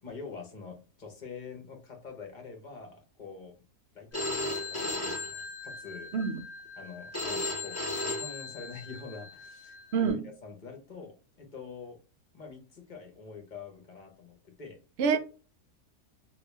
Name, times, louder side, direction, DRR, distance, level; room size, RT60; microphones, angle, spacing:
voice 1, 0.0-3.5 3.9-6.1 6.8-10.2 10.4-12.0 12.3-14.8, left 5 dB, 35° left, 1.0 m, -45 dB
Telephone, 4.1-10.1, left 2 dB, 10° left, 1.0 m, -36 dB
voice 2, 9.9-10.3 15.0-15.2, right 6 dB, 60° right, 0.7 m, -26 dB
2.9 x 2.8 x 3.2 m
omnidirectional pair, 1.6 m